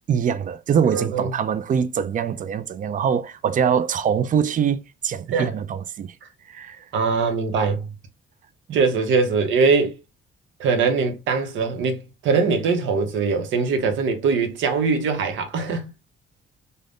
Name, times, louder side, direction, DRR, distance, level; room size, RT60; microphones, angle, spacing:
voice 1, 0.1-6.1 6.5-6.9 8.7-8.8, right 7 dB, 40° right, 0.4 m, -23 dB
voice 2, 0.8-1.3 5.3-5.5 6.9-7.9 8.7-10.0 10.6-15.9, right 4 dB, 80° right, 0.7 m, -22 dB
2.5 x 2.1 x 3.4 m
cardioid pair, 90°, 20 cm